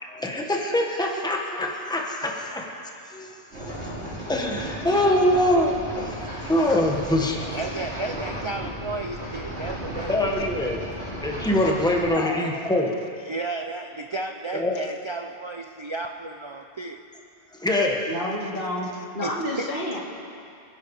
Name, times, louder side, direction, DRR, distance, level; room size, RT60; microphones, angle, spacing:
voice 1, 0.0-2.7 3.1-5.7 6.0-7.5 10.1-10.8 11.2-13.0 14.5-14.8 17.6-18.0, left 1 dB, 5° left, 0 dB, 1.4 m, -24 dB
sound 1, 3.5-12.0, equal, 85° right, 5.2 m, -34 dB
voice 2, 7.5-10.5 13.2-17.0 18.4-18.5 18.9-19.7, right 2 dB, 35° right, 4 dB, 0.5 m, -33 dB
voice 3, 12.1-12.4 18.1-18.9 19.1-20.0, left 1 dB, 55° left, -3 dB, 2.7 m, -29 dB
26.5 x 10.5 x 4.8 m, 2.5 s
omnidirectional pair, 1.1 m